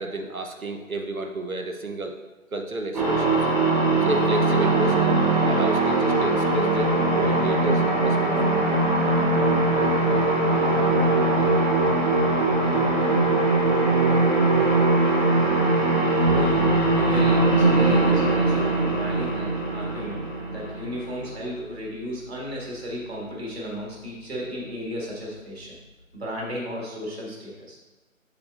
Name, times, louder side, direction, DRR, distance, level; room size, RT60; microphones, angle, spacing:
voice 1, 0.0-2.2 2.5-3.7 4.0-8.6, right 1 dB, 80° right, 4 dB, 1.0 m, -31 dB
Resonating horn, 2.9-21.3, right 2 dB, 30° right, 1.2 m, -21 dB
voice 2, 16.2-25.8 26.1-27.8, equal, 50° right, -4 dB, 1.9 m, -34 dB
sound 1, 16.3-26.2, left 3 dB, 60° left, 0.6 m, -38 dB
6.9 x 6.6 x 2.5 m, 1.2 s
figure-of-eight pair, 150°, 41 cm